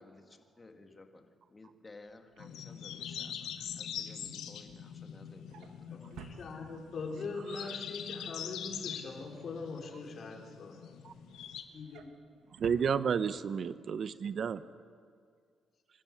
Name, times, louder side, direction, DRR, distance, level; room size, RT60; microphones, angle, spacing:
voice 1, 0.0-6.0, left 2 dB, 25° left, 5 dB, 2.1 m, -55 dB
Drawer open or close, 2.1-7.1 7.5-10.3 10.7-13.7 14.0-14.2 14.5-14.6, right 7 dB, 90° right, 1.6 m, -56 dB
sound 1, 2.4-11.6, left 9 dB, 85° left, 1.4 m, -43 dB
voice 2, 6.1-10.8 11.7-12.1, left 4 dB, 50° left, 2 dB, 3.5 m, -42 dB
voice 3, 12.6-14.6, right 7 dB, 55° right, 15 dB, 0.7 m, -32 dB
26.5 x 12.5 x 8.4 m, 2.1 s
cardioid pair, 90°, 0 cm